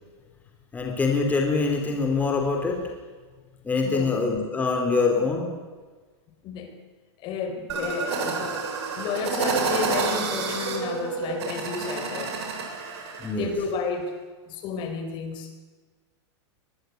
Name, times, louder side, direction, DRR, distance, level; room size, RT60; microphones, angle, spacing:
voice 1, 0.7-2.8 3.6-5.5 13.2-13.5, left 4 dB, 10° left, 2 dB, 3.6 m, -24 dB
voice 2, 3.8-4.2 6.4-6.7 7.2-12.4 13.4-14.1 14.5-15.5, left 5 dB, 30° left, 7 dB, 4.0 m, -32 dB
sound 1, 7.7-13.3, right 5 dB, 65° right, 7.8 m, -29 dB
24.0 x 21.5 x 9.4 m, 1.4 s
supercardioid pair, 160°, 15 cm